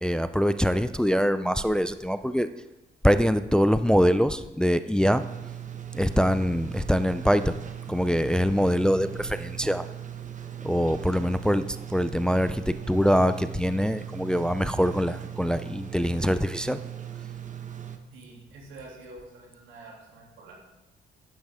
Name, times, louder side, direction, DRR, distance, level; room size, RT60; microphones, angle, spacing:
voice 1, 0.0-2.5 3.0-5.2 6.0-7.5 7.9-9.8 10.6-11.6 11.9-16.8, equal, 5° left, 12 dB, 0.4 m, -24 dB
sound 1, 5.0-18.0, right 9 dB, 40° right, 1.0 m, -39 dB
voice 2, 18.1-20.7, right 2 dB, 90° right, -3 dB, 2.9 m, -47 dB
11.0 x 7.9 x 3.6 m, 0.98 s
cardioid pair, 90°, 20 cm